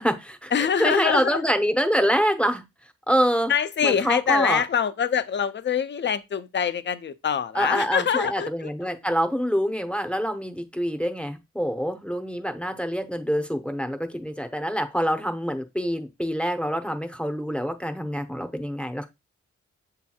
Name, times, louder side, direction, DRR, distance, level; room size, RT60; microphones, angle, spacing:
voice 1, 0.0-2.6 3.1-3.5 3.8-4.6 7.5-19.1, equal, 5° left, 0.7 m, -26 dB
voice 2, 0.5-1.4 3.5-8.9, left 7 dB, 40° left, 0.5 m, -25 dB
6.8 x 2.9 x 2.3 m
cardioid pair, 55°, 30 cm